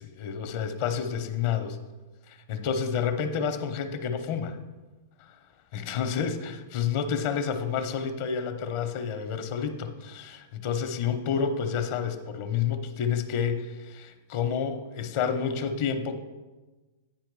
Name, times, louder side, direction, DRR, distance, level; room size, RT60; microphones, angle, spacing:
voice 1, 0.0-1.7 2.3-4.6 5.2-5.4 5.7-16.2, left 7 dB, 55° left, 8 dB, 0.8 m, -29 dB
9.5 x 4.8 x 4.7 m, 1.2 s
hypercardioid pair, 120°, 0 cm